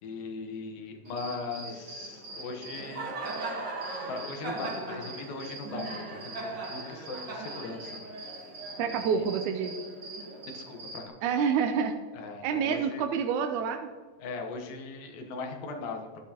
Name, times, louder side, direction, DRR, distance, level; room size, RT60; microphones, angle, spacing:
voice 1, 0.0-3.1 4.1-8.0 8.8-9.3 10.5-11.0 12.1-13.1 14.2-16.2, left 4 dB, 80° left, 4 dB, 2.9 m, -39 dB
Cricket, 1.0-11.1, right 2 dB, 55° right, 1.2 m, -39 dB
voice 2, 8.8-9.7 11.2-12.0 12.4-13.9, right 6 dB, 80° right, 5 dB, 1.8 m, -28 dB
13.0 x 10.0 x 2.9 m, 1.5 s
omnidirectional pair, 4.0 m